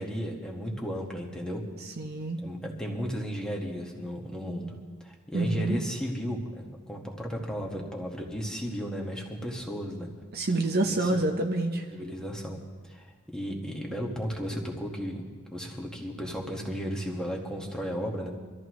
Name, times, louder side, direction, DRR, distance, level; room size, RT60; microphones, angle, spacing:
voice 1, 0.0-1.6 2.4-4.7 5.0-10.1 11.0-11.3 11.9-15.2 15.5-18.3, equal, 5° left, -1 dB, 1.7 m, -34 dB
voice 2, 2.0-2.4 5.3-5.8 10.3-11.9, right 2 dB, 45° right, 3 dB, 1.0 m, -27 dB
24.5 x 13.5 x 3.2 m, 1.4 s
head